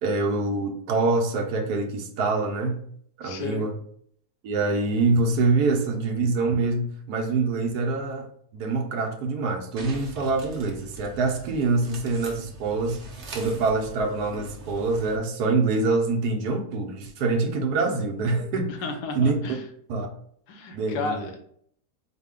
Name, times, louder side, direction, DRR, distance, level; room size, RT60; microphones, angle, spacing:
voice 1, 0.0-2.8 3.2-3.7 4.4-8.3 8.5-13.0 13.3-18.7 19.1-19.4 19.9-20.1 20.7-21.3, right 3 dB, 75° right, 1.2 m, -25 dB
voice 2, 3.2-3.7 18.7-19.6 20.5-21.4, left 4 dB, 80° left, 1.3 m, -33 dB
sound 1, 9.8-15.2, right 2 dB, 55° right, 0.9 m, -42 dB
4.8 x 2.1 x 3.6 m
omnidirectional pair, 1.7 m